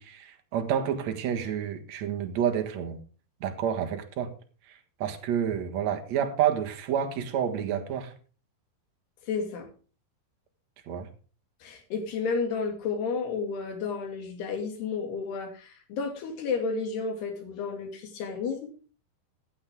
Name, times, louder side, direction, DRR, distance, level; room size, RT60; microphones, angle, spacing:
voice 1, 0.0-3.0 3.4-4.3 5.0-8.1 10.9-11.1, right 9 dB, 55° right, 2.4 m, -29 dB
voice 2, 9.3-9.7 11.6-18.7, left 5 dB, 80° left, 4.5 m, -32 dB
15.0 x 10.0 x 3.6 m
omnidirectional pair, 4.6 m